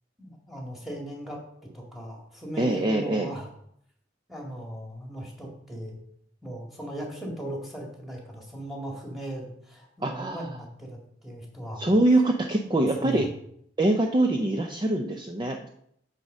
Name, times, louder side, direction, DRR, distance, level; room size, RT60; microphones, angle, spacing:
voice 1, 0.2-1.4 1.7-3.5 4.3-6.0 6.4-11.9 12.7-13.3, right 1 dB, ahead, -1 dB, 1.9 m, -38 dB
voice 2, 2.6-3.3 10.0-10.6 11.8-13.3 13.8-15.7, right 1 dB, 25° right, 3 dB, 0.5 m, -24 dB
8.3 x 4.2 x 6.3 m, 0.71 s
head